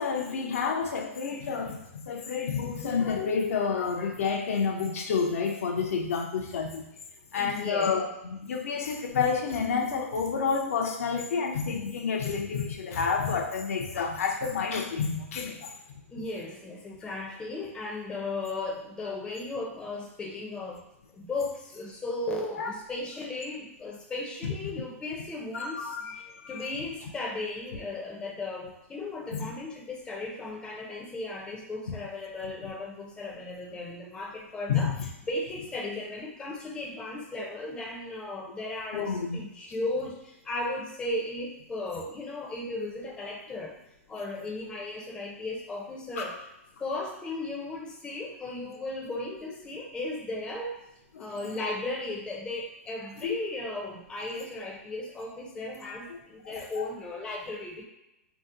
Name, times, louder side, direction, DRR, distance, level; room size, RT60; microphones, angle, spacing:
voice 1, 0.0-6.9 7.3-15.7 22.5-22.7 24.4-24.5 25.5-26.7 29.3-29.5 31.9-32.0 32.6-32.7 34.7-35.1 38.9-39.4 44.1-44.2 46.2-46.4 51.1-51.3 53.2-53.4 56.1-56.2 56.4-56.9, left 5 dB, 75° left, 2 dB, 0.5 m, -29 dB
voice 2, 7.3-7.9 16.1-20.8 21.2-25.9 26.5-34.9 35.3-40.2 40.4-43.7 44.1-46.3 46.8-50.7 51.2-57.8, left 2 dB, 10° left, -1 dB, 0.5 m, -36 dB
2.7 x 2.0 x 3.7 m, 0.89 s
hypercardioid pair, 140°, 8 cm